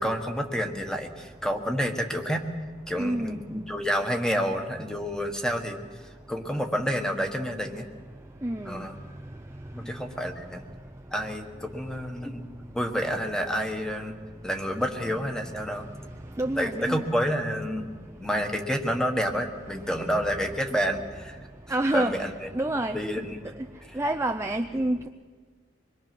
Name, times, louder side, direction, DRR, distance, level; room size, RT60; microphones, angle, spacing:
voice 1, 0.0-2.5 2.9-5.8 6.3-7.9 8.6-9.0 9.7-10.6 11.1-12.5 12.7-14.1 14.4-15.9 16.6-17.9 18.2-21.4 21.9-22.5 22.9-23.4 23.8-24.0, equal, 5° left, 4 dB, 1.5 m, -29 dB
voice 2, 3.0-3.4 8.4-8.9 16.4-17.1 21.7-22.2 22.5-23.0 23.9-25.1, right 1 dB, 15° right, 5 dB, 0.6 m, -27 dB
26.0 x 21.5 x 6.1 m, 1.5 s
head